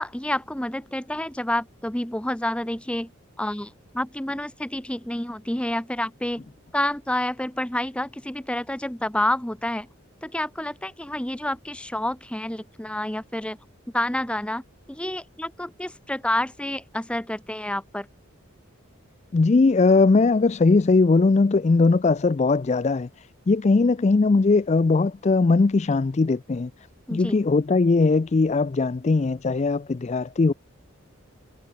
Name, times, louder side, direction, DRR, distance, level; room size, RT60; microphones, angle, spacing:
voice 1, 0.0-3.1 3.4-6.4 6.7-9.9 10.2-13.6 13.9-14.6 14.9-18.1 27.1-27.4, left 1 dB, 5° left, 0.7 m, -29 dB
voice 2, 19.3-23.1 23.5-26.7 27.1-30.5, left 3 dB, 30° left, 0.4 m, -20 dB
head